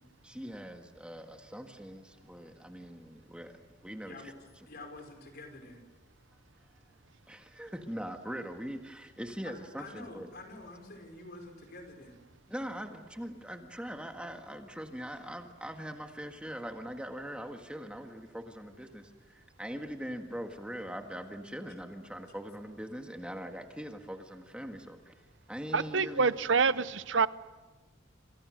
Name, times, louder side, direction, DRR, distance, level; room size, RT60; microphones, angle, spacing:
voice 1, 0.2-4.2 7.3-10.3 12.5-25.2 25.5-26.3, equal, 5° right, 1.7 m, -42 dB
voice 2, 4.0-4.4 4.7-5.8 9.4-12.2, left 2 dB, 55° left, 5.3 m, -48 dB
voice 3, 25.7-27.3, right 5 dB, 70° right, 0.7 m, -26 dB
28.0 x 27.5 x 6.4 m
head